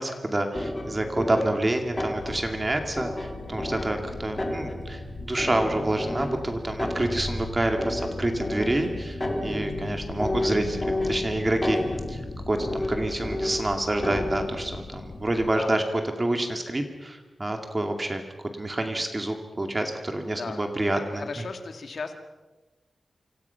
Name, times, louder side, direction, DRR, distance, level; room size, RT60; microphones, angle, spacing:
voice 1, 0.0-10.8 11.0-11.8 12.1-12.2 12.5-18.2 18.6-21.4, right 1 dB, 20° right, 4 dB, 2.3 m, -28 dB
sound 1, 0.5-14.7, left 1 dB, 15° left, 3.8 m, -32 dB
sound 2, 2.2-15.5, left 4 dB, 80° left, 2.5 m, -41 dB
voice 2, 20.9-22.1, left 4 dB, 55° left, 5 dB, 2.2 m, -36 dB
27.5 x 26.0 x 5.8 m, 1.2 s
wide cardioid pair, 180°, 0 cm